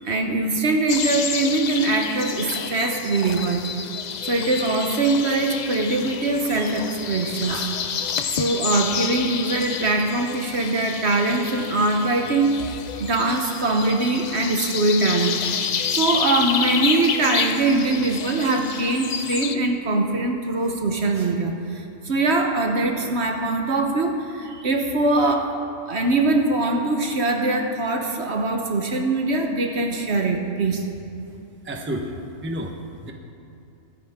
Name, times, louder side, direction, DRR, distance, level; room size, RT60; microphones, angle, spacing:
voice 1, 0.0-3.7 4.2-7.7 8.3-12.6 13.0-15.4 15.9-25.5 25.9-30.8, right 2 dB, 55° right, 3 dB, 1.2 m, -22 dB
sound 1, 0.9-19.6, left 7 dB, 85° left, 0.3 m, -29 dB
voice 2, 31.6-32.8 33.0-33.1, equal, 10° right, 2 dB, 0.8 m, -30 dB
24.0 x 9.2 x 3.6 m, 2.7 s
omnidirectional pair, 1.4 m